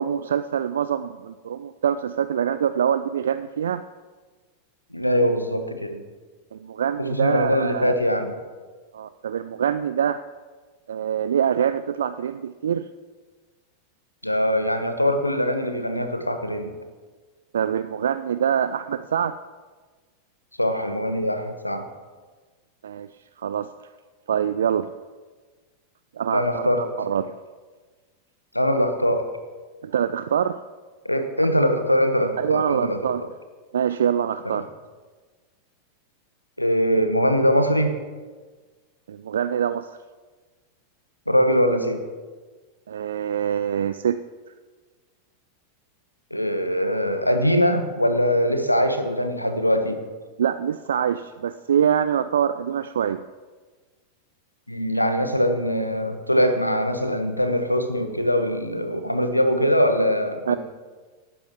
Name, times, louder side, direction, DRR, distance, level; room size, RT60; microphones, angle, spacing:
voice 1, 0.0-3.8 6.5-7.9 8.9-10.2 10.9-12.9 17.5-19.3 22.8-23.1 23.4-23.7 24.3-24.9 26.2-27.3 29.8-30.6 32.4-33.2 33.7-34.7 39.1-39.9 42.9-44.2 50.4-53.2 60.5-60.6, right 8 dB, 65° right, 12 dB, 0.3 m, -24 dB
voice 2, 4.9-6.0 7.0-8.3 14.2-16.7 20.6-21.9 26.3-26.9 28.5-29.3 31.0-33.0 34.4-34.6 36.6-38.0 41.3-42.0 46.3-50.0 54.7-60.6, equal, 85° left, 8 dB, 1.1 m, -22 dB
18.5 x 12.5 x 3.1 m, 1.4 s
figure-of-eight pair, 90°, 0 cm